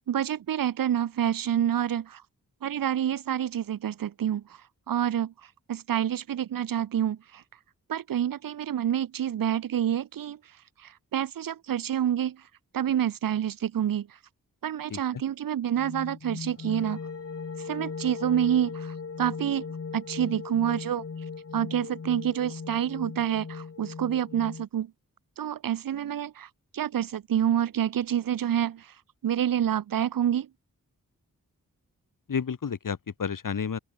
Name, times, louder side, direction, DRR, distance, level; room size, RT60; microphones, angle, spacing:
voice 1, 0.1-2.2 2.6-4.4 4.9-5.3 5.7-7.4 7.9-10.4 11.1-12.4 12.7-14.1 14.6-17.0 17.7-19.6 19.9-21.0 21.5-24.9 25.4-26.5 26.7-28.8 29.2-30.5, right 10 dB, 80° right, 0.8 m, -27 dB
voice 2, 14.9-15.2 32.3-33.8, left 6 dB, 70° left, 3.5 m, -31 dB
sound 1, 15.7-24.6, left 5 dB, 45° left, 2.0 m, -38 dB
open air
wide cardioid pair, 100°, 33 cm